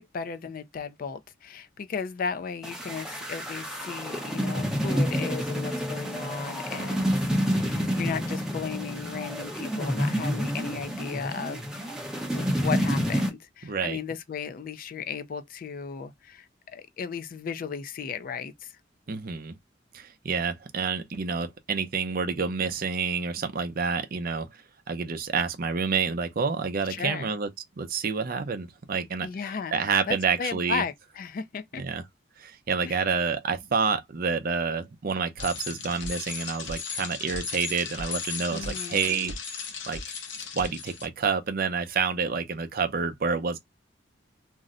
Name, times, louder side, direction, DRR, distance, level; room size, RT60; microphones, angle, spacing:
voice 1, 0.0-11.7 12.3-16.5 16.7-18.7 26.9-27.3 29.2-31.8 32.8-33.1 38.5-39.0, left 6 dB, 50° left, 0.4 m, -35 dB
sound 1, 2.6-13.3, equal, 5° right, 0.7 m, -29 dB
voice 2, 6.8-7.2 13.6-14.0 19.1-19.5 19.9-24.5 24.9-27.5 27.8-29.3 29.7-30.8 31.8-32.0 32.4-39.4 39.9-40.0 40.5-43.6, right 5 dB, 50° right, 0.5 m, -28 dB
Bicycle, 35.4-41.1, left 5 dB, 80° left, 0.7 m, -36 dB
2.6 x 2.1 x 3.6 m
head